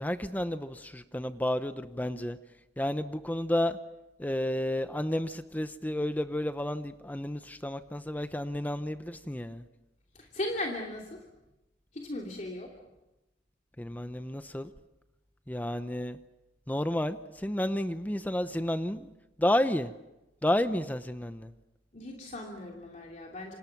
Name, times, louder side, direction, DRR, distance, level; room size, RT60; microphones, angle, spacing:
voice 1, 0.0-2.4 2.8-3.8 4.2-9.6 13.8-14.7 15.5-16.2 16.7-19.1 19.4-19.9 20.4-21.5, left 1 dB, 10° left, 10 dB, 0.8 m, -31 dB
voice 2, 10.2-11.2 11.9-12.7 21.9-23.6, left 1 dB, 45° left, 0 dB, 3.0 m, -37 dB
29.0 x 26.0 x 6.0 m, 0.96 s
head